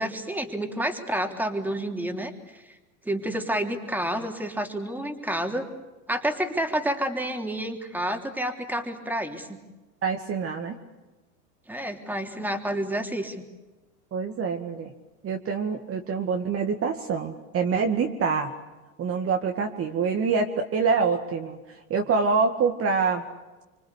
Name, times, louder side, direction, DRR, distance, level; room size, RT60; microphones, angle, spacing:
voice 1, 0.0-2.6 3.1-5.7 6.1-9.6 11.7-13.4, right 1 dB, 5° right, 5 dB, 3.3 m, -29 dB
voice 2, 10.0-10.7 14.1-14.9 15.2-18.5 19.0-21.6 21.9-23.2, right 5 dB, 30° right, 4 dB, 2.2 m, -25 dB
26.0 x 25.5 x 8.4 m, 1.1 s
hypercardioid pair, 115°, 43 cm